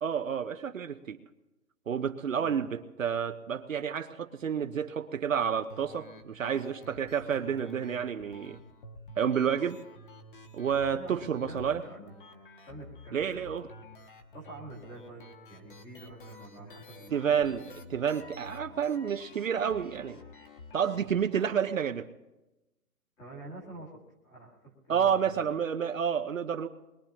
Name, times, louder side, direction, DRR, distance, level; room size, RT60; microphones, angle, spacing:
voice 1, 0.0-1.2 1.9-8.6 9.2-9.8 10.5-11.8 13.1-13.7 17.1-20.2 20.7-22.1 24.9-26.7, right 7 dB, 55° right, 8 dB, 0.8 m, -30 dB
sound 1, 5.7-21.7, left 2 dB, 35° left, 1.3 m, -50 dB
voice 2, 10.9-12.1 12.6-13.2 14.3-17.8 23.2-25.5, right 2 dB, 10° left, -3 dB, 1.6 m, -48 dB
22.0 x 21.5 x 2.9 m, 1.0 s
hypercardioid pair, 165°, 47 cm